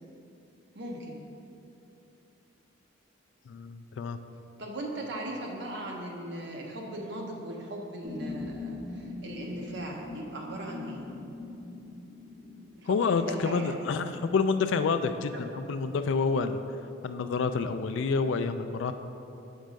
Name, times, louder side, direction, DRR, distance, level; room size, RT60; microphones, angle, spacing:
voice 1, 0.7-1.2 4.6-11.1 12.8-13.7 15.3-15.4, right 1 dB, 55° right, -1 dB, 0.9 m, -38 dB
voice 2, 3.5-4.2 12.9-16.6 17.0-18.9, left 4 dB, 65° left, 10 dB, 0.3 m, -28 dB
sound 1, 8.0-14.9, left 3 dB, 15° right, 1.3 m, -42 dB
6.4 x 4.5 x 5.1 m, 2.8 s
head